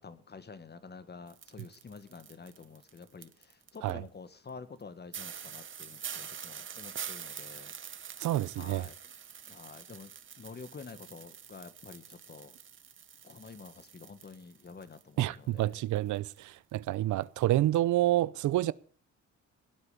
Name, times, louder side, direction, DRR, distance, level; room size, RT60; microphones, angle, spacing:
voice 1, 0.0-7.7 8.5-8.9 9.5-10.1 10.4-12.6 13.2-15.8, left 5 dB, 35° left, 1.6 m, -49 dB
sound 1, 1.3-3.9 4.5-4.6 4.8-4.9 5.1-15.2 15.5-16.4 16.7-16.9 17.2-17.4, right 8 dB, 40° right, 1.0 m, -46 dB
voice 2, 8.2-8.8 15.2-18.7, right 14 dB, 75° right, 0.6 m, -28 dB
17.0 x 8.3 x 6.8 m
cardioid pair, 90°, 30 cm